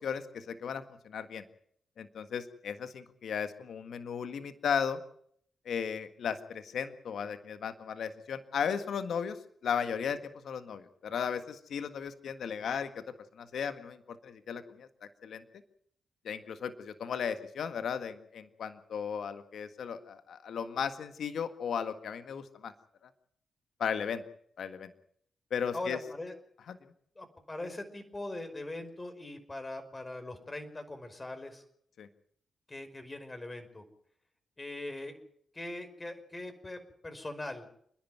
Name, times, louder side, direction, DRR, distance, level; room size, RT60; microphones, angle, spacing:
voice 1, 0.0-1.4 2.0-5.0 5.6-9.4 9.6-10.2 10.4-14.0 14.2-14.9 15.2-15.4 16.2-22.7 23.8-24.2 24.6-24.9 25.5-26.0 26.7-26.8 32.0-32.1, left 7 dB, 75° left, 10 dB, 1.7 m, -35 dB
voice 2, 25.7-26.3 27.2-31.6 32.7-33.8 34.6-35.1 35.5-37.7, left 2 dB, 30° left, 7 dB, 5.3 m, -41 dB
28.5 x 11.0 x 9.4 m, 0.66 s
supercardioid pair, 50°, 0 cm